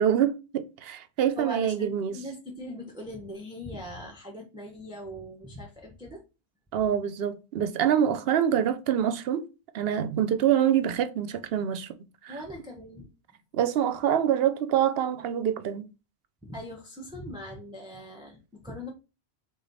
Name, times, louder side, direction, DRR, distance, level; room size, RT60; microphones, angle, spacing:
voice 1, 0.0-2.2 6.7-9.4 9.7-11.9 12.2-12.3 13.5-15.9, right 9 dB, 65° right, 0.8 m, -25 dB
voice 2, 1.3-6.2 12.3-13.1 16.4-18.9, equal, 5° right, 0.8 m, -41 dB
5.0 x 2.4 x 4.0 m
omnidirectional pair, 1.1 m